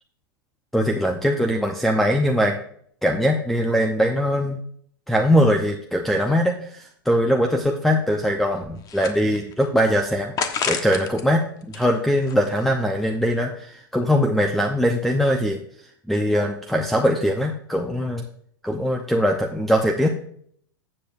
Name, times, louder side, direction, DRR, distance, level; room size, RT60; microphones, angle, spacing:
voice 1, 0.7-2.5 3.0-4.6 5.1-10.3 10.7-15.6 16.1-18.2 18.6-20.1, equal, ahead, 3 dB, 0.8 m, -21 dB
sound 1, 8.6-9.7 10.4-11.2 11.6-12.8, left 6 dB, 30° left, 1.2 m, -30 dB
14.5 x 7.6 x 2.6 m, 0.65 s
hypercardioid pair, 105°, 12 cm